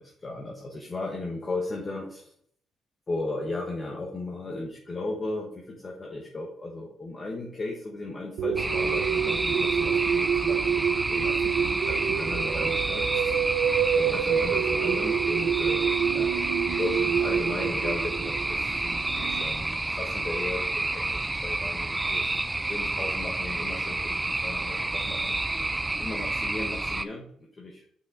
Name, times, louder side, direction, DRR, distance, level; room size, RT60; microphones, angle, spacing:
voice 1, 0.0-2.3 3.1-13.4 13.9-15.8 16.1-16.3 16.6-21.0 21.3-22.4 22.7-25.4 26.0-27.3 27.6-27.8, left 2 dB, 35° left, -1 dB, 1.3 m, -36 dB
sound 1, 8.4-19.4, right 8 dB, 85° right, 0.6 m, -28 dB
sound 2, 8.6-27.0, right 2 dB, 15° right, 0.5 m, -29 dB
6.4 x 5.9 x 4.0 m, 0.62 s
cardioid pair, 90°, 0 cm